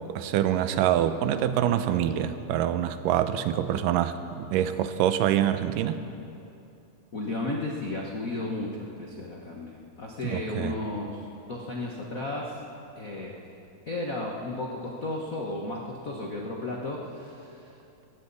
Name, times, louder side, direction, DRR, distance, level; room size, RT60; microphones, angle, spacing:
voice 1, 0.1-6.0 10.2-10.8, right 11 dB, 90° right, 11 dB, 2.3 m, -25 dB
voice 2, 7.1-11.2 11.5-12.6 12.9-13.3 13.9-17.6, left 2 dB, 75° left, -2 dB, 0.7 m, -34 dB
21.5 x 16.5 x 4.1 m, 2.7 s
omnidirectional pair, 3.7 m